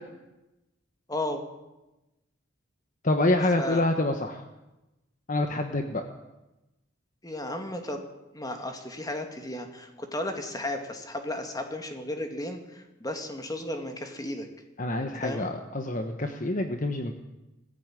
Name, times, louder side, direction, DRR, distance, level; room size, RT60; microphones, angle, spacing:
voice 1, 1.1-1.4 3.6-3.8 7.2-8.0 8.3-14.5 15.2-15.5, left 1 dB, 20° left, 5 dB, 2.3 m, -34 dB
voice 2, 3.0-4.4 5.3-6.0 14.8-17.1, left 2 dB, 40° left, 6 dB, 1.2 m, -27 dB
19.0 x 15.0 x 9.1 m, 1.0 s
head